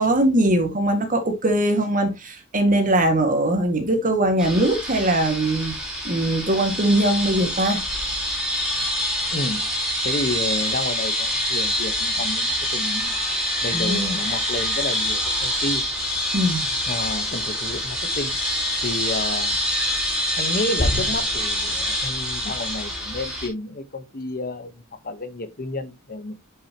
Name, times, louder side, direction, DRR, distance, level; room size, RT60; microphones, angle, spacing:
voice 1, 0.0-5.7 6.0-7.8 13.7-14.2 16.3-16.7, right 1 dB, 40° right, 2.0 m, -21 dB
sound 1, 4.4-23.5, left 1 dB, ahead, 4.5 m, -25 dB
voice 2, 9.3-9.7 10.0-13.2 13.6-15.8 16.9-18.4 18.8-19.6 20.4-26.3, left 2 dB, 45° left, 1.2 m, -30 dB
8.6 x 7.3 x 3.0 m
head